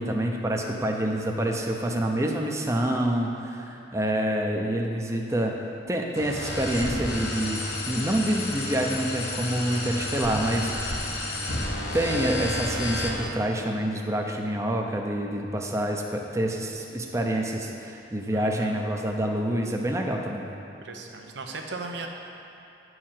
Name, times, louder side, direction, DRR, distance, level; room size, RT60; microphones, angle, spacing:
voice 1, 0.0-5.5 5.9-11.1 11.9-20.5, right 1 dB, 15° right, 1 dB, 0.7 m, -27 dB
sound 1, 6.2-13.3, left 1 dB, 65° left, 1.1 m, -31 dB
voice 2, 18.3-18.8 20.8-22.1, right 3 dB, 75° right, 2 dB, 1.0 m, -37 dB
10.0 x 4.7 x 7.4 m, 2.9 s
head